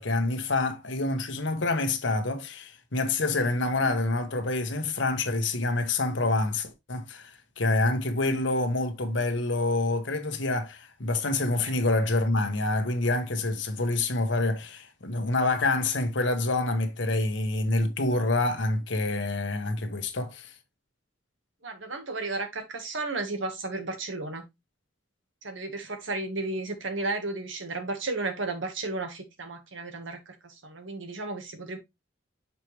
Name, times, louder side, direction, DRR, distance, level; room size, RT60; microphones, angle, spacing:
voice 1, 0.0-20.5, left 2 dB, 70° left, 1.2 m, -27 dB
voice 2, 21.6-24.4 25.4-31.8, right 3 dB, 85° right, 1.6 m, -33 dB
6.7 x 4.7 x 3.1 m
head